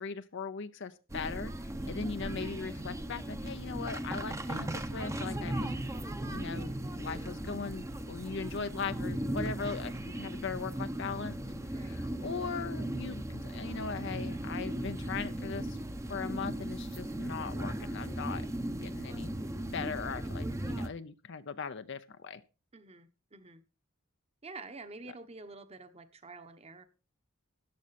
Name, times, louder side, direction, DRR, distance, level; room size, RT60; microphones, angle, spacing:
voice 1, 0.0-5.7 6.2-6.7 7.0-11.4 11.8-15.8 16.1-18.5 18.8-19.3 19.7-22.4, left 5 dB, 60° left, 10 dB, 0.6 m, -39 dB
sound 1, 1.1-20.9, right 1 dB, 15° right, 0.8 m, -37 dB
voice 2, 22.7-23.6 24.4-26.8, right 3 dB, 30° right, 11 dB, 1.2 m, -48 dB
13.5 x 9.5 x 4.2 m, 0.33 s
head